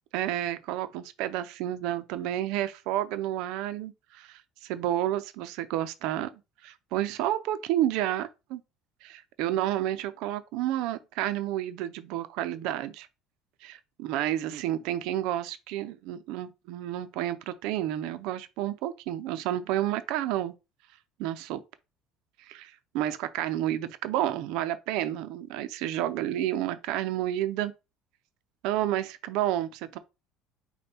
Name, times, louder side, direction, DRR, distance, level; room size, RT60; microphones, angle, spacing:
voice 1, 0.1-6.3 6.6-8.6 9.0-13.1 13.6-20.5 21.2-21.6 22.4-27.7 28.6-30.0, right 12 dB, 75° right, 0.5 m, -30 dB
5.3 x 2.2 x 4.2 m
cardioid pair, 115°, 0 cm